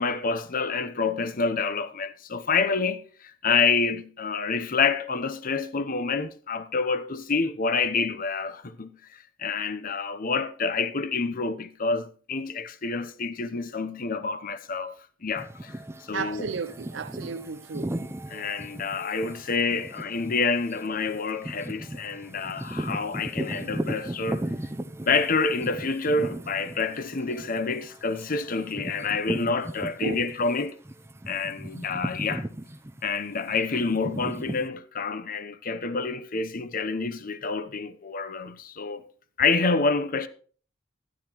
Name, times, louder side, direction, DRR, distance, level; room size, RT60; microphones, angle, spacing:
voice 1, 0.0-15.8 16.1-16.5 18.3-24.5 25.0-30.8 31.3-32.4 33.0-39.0 39.4-40.3, left 4 dB, 45° left, 0.8 m, -28 dB
sound 1, 15.4-30.5 30.9-34.7, right 1 dB, 15° right, 0.6 m, -37 dB
voice 2, 16.1-17.9 30.0-30.3, right 5 dB, 70° right, 0.5 m, -33 dB
12.5 x 11.5 x 3.1 m
head